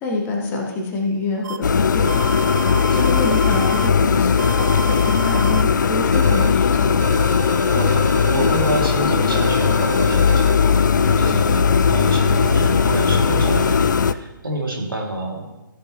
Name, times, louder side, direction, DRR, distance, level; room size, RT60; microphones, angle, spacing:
voice 1, 0.0-2.5 2.9-7.0, left 2 dB, 20° left, 0 dB, 1.3 m, -26 dB
sound 1, 1.4-1.6 2.1-3.9 4.4-5.6 6.1-6.5 7.0-8.8 9.3-10.6 11.0-11.4 11.9-13.7, right 6 dB, 55° right, 0.5 m, -31 dB
sound 2, 1.6-14.1, left 6 dB, 60° left, 0.4 m, -18 dB
voice 2, 7.7-15.5, right 1 dB, 80° right, 0 dB, 2.5 m, -28 dB
14.0 x 7.8 x 3.0 m, 0.98 s
figure-of-eight pair, 135°, 11 cm